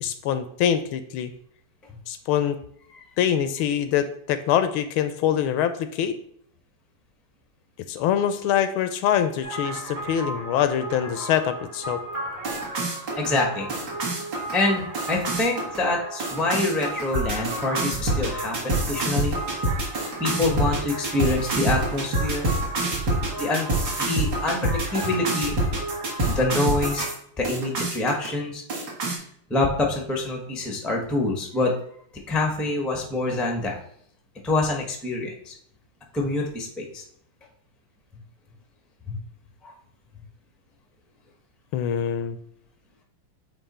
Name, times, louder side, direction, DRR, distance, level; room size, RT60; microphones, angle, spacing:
voice 1, 0.0-1.3 2.1-2.6 3.2-6.1 7.9-12.0 41.7-42.4, left 9 dB, 80° left, 10 dB, 1.4 m, -24 dB
sound 1, 9.4-27.1 27.4-28.3 28.7-29.2, right 2 dB, 50° right, 2.0 m, -28 dB
voice 2, 13.2-13.7 14.5-19.4 19.7-19.8 20.2-22.5 23.4-23.7 24.0-25.5 26.3-27.1 27.4-28.6 29.5-31.8 32.3-33.8 34.4-35.5 36.1-37.0 39.0-39.2 39.6-39.7, left 2 dB, ahead, 1 dB, 0.4 m, -26 dB
8.7 x 3.0 x 4.2 m, 0.65 s
omnidirectional pair, 2.3 m